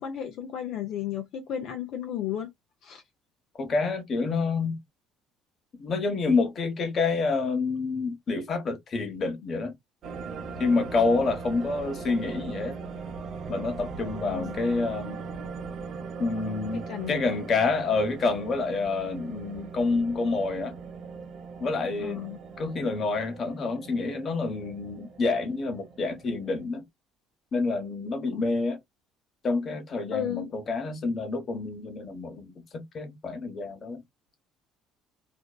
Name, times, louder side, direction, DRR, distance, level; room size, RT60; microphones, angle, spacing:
voice 1, 0.0-2.5 2.8-3.0 14.2-14.6 16.7-17.2 22.0-22.4 28.4-28.5 30.1-30.5, left 10 dB, 65° left, 0.6 m, -33 dB
voice 2, 3.6-4.8 5.8-9.7 10.6-12.7 13.5-15.2 16.2-20.7 21.6-22.2 22.6-26.8 27.5-28.8 29.4-34.0, left 3 dB, 45° left, 1.0 m, -28 dB
sound 1, 10.0-26.6, right 4 dB, 55° right, 0.7 m, -40 dB
2.6 x 2.2 x 2.2 m
supercardioid pair, 85°, 0 cm